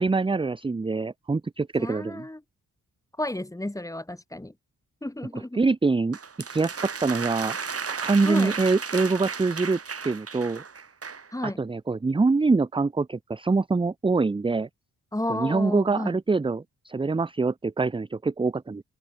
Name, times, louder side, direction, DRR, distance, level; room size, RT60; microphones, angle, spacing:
voice 1, 0.0-2.2 5.5-6.2 6.5-7.6 8.0-9.8 10.0-10.6 11.4-14.7 15.3-18.8, right 3 dB, 15° right, 0.6 m, -24 dB
voice 2, 1.8-2.4 3.2-4.5 5.0-5.6 8.2-8.5 11.3-11.6 15.1-16.2, left 1 dB, 10° left, 3.2 m, -32 dB
sound 1, 6.1-11.3, right 5 dB, 45° right, 3.8 m, -34 dB
open air
cardioid pair, 85°, 33 cm